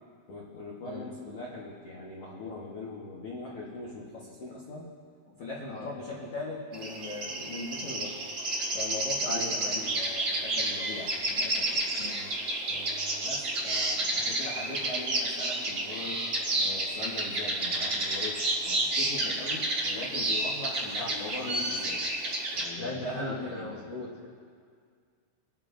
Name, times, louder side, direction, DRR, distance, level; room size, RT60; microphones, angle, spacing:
voice 1, 0.3-4.9 5.4-8.2 8.7-11.9 12.7-16.3 16.5-22.0 22.5-23.9, left 2 dB, 75° left, -5 dB, 1.4 m, -40 dB
sound 1, 6.7-22.7, right 1 dB, 50° right, 1.4 m, -30 dB
voice 2, 9.2-9.7 12.0-12.3 21.0-21.1 21.4-21.5 22.8-24.3, left 2 dB, 55° left, -6 dB, 1.9 m, -38 dB
25.5 x 10.5 x 2.6 m, 2.1 s
omnidirectional pair, 4.8 m